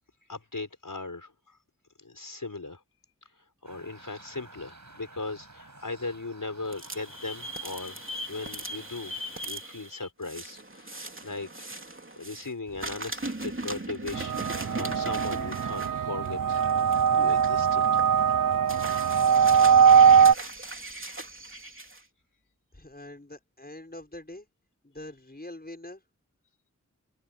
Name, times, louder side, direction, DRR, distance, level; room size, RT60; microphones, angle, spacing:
voice 1, 0.3-1.6 2.0-2.8 3.6-8.0 8.3-9.1 9.4-11.7 12.2-16.6 17.1-17.9, left 3 dB, 90° left, 5.4 m, -38 dB
sound 1, 3.6-9.5, right 2 dB, 65° right, 5.9 m, -52 dB
sound 2, 6.7-12.5 12.8-22.0, right 1 dB, 40° right, 3.1 m, -39 dB
sound 3, 14.1-20.3, right 7 dB, 85° right, 0.5 m, -21 dB
voice 2, 22.7-24.5 24.8-26.0, left 1 dB, 30° left, 6.1 m, -44 dB
open air
wide cardioid pair, 40°, 32 cm